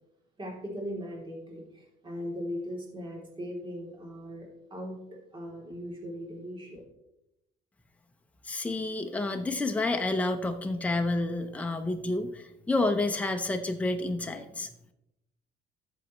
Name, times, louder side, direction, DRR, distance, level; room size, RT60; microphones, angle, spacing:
voice 1, 0.4-5.0 5.3-6.8, equal, 30° right, -1 dB, 3.2 m, -39 dB
voice 2, 8.4-14.7, left 2 dB, 10° left, 5 dB, 0.8 m, -29 dB
12.5 x 7.2 x 3.2 m, 0.85 s
cardioid pair, 110°, 17 cm